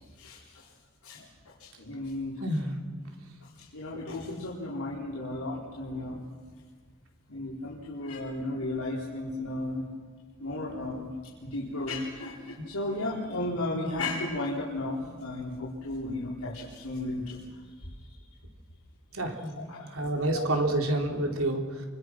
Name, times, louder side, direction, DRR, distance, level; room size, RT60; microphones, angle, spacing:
voice 1, 0.2-0.7 1.0-1.3 1.6-2.4 3.4-6.3 7.3-9.9 10.4-11.1 11.4-17.4 19.7-20.0 20.3-20.4, left 2 dB, 90° left, -6 dB, 4.4 m, -34 dB
voice 2, 2.4-2.7 19.1-21.8, right 1 dB, 70° right, 2 dB, 4.1 m, -29 dB
29.5 x 24.5 x 6.3 m, 1.5 s
head